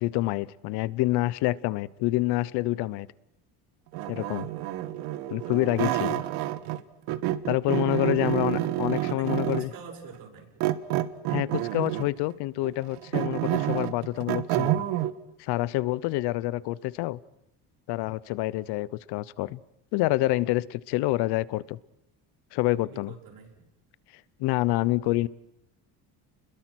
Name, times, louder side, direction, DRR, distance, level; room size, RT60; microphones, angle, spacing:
voice 1, 0.0-3.1 4.1-4.5 5.3-6.2 7.5-9.7 11.3-14.9 15.4-17.2 17.9-19.6 19.9-21.8 22.5-23.1 24.4-25.3, left 18 dB, 80° left, 21 dB, 0.9 m, -27 dB
sound 1, 3.9-6.8 7.1-9.8 10.6-12.2 12.6-15.1, right 14 dB, 80° right, 1.4 m, -28 dB
voice 2, 8.0-8.4 8.8-10.5 22.7-23.6, right 6 dB, 60° right, 2 dB, 7.1 m, -45 dB
30.0 x 22.0 x 6.2 m, 0.83 s
cardioid pair, 120°, 39 cm